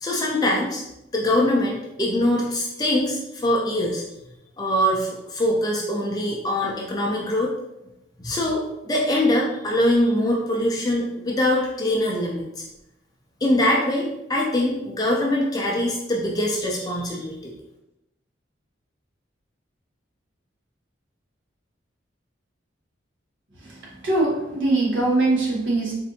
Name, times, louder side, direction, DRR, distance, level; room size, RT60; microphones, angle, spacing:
voice 1, 0.0-0.8 1.1-4.0 4.6-7.5 8.2-12.4 13.4-17.5, left 1 dB, 20° left, -2 dB, 0.4 m, -23 dB
voice 2, 24.0-25.9, right 2 dB, 75° right, -3 dB, 1.0 m, -21 dB
4.2 x 2.6 x 2.7 m, 0.88 s
head